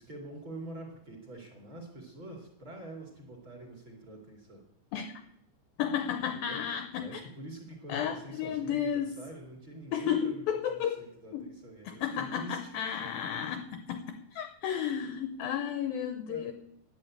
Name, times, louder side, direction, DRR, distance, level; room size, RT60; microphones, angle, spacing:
voice 1, 0.0-4.6 6.3-6.6 7.0-12.7 16.3-16.5, right 1 dB, 35° right, 2 dB, 2.4 m, -46 dB
voice 2, 5.8-7.2 7.9-9.1 9.9-11.0 11.3-11.5 11.9-16.5, left 8 dB, 80° left, 8 dB, 2.1 m, -33 dB
11.5 x 9.9 x 8.5 m, 0.81 s
omnidirectional pair, 5.1 m